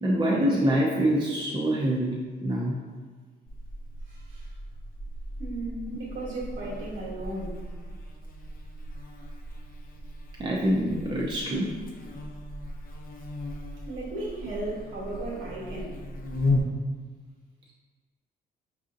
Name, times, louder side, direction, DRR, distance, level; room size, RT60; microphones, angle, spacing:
voice 1, 0.0-2.8 5.9-6.0 10.4-11.7, right 1 dB, 20° right, -4 dB, 0.6 m, -25 dB
Buzz, 3.5-16.6, left 2 dB, 45° left, 0.5 m, -36 dB
voice 2, 4.1-4.5 5.4-7.7 13.9-16.0, right 2 dB, 80° right, -6 dB, 1.2 m, -36 dB
4.8 x 2.7 x 2.5 m, 1.5 s
cardioid pair, 90°, 20 cm